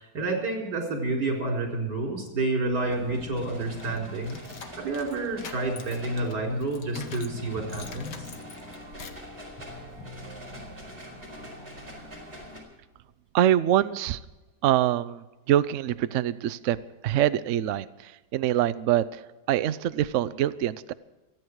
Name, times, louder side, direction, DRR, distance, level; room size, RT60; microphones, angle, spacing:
voice 1, 0.0-4.4 4.8-8.3, right 2 dB, 60° right, 0 dB, 4.9 m, -29 dB
sound 1, 2.7-12.6, left 1 dB, 35° right, 4.8 m, -42 dB
sound 2, 3.8-7.4 7.7-9.3, left 6 dB, 65° left, 1.9 m, -45 dB
voice 2, 13.3-14.2 14.6-16.8 17.0-20.9, right 12 dB, 90° right, 14 dB, 0.6 m, -25 dB
28.5 x 9.5 x 4.7 m, 1.1 s
omnidirectional pair, 2.1 m